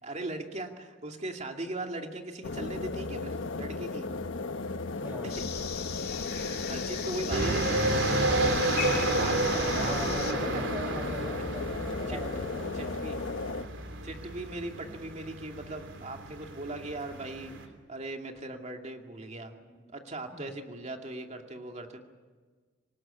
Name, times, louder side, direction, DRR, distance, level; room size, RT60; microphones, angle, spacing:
voice 1, 0.0-4.1 5.2-5.3 6.3-7.9 9.2-9.4 9.8-10.6 12.1-12.2 12.7-13.2 14.0-19.5 19.9-22.0, right 2 dB, 35° right, 3 dB, 2.4 m, -39 dB
sound 1, 2.4-13.6, left 3 dB, 85° left, 1.0 m, -35 dB
voice 2, 4.7-5.4 9.2-13.0 19.6-19.8 20.3-20.5, equal, 10° right, 5 dB, 5.2 m, -41 dB
sound 2, 5.3-10.3, left 8 dB, 55° left, 2.8 m, -38 dB
sound 3, 7.3-17.6, right 2 dB, 80° right, 3.4 m, -31 dB
26.0 x 19.0 x 9.9 m, 1.4 s
head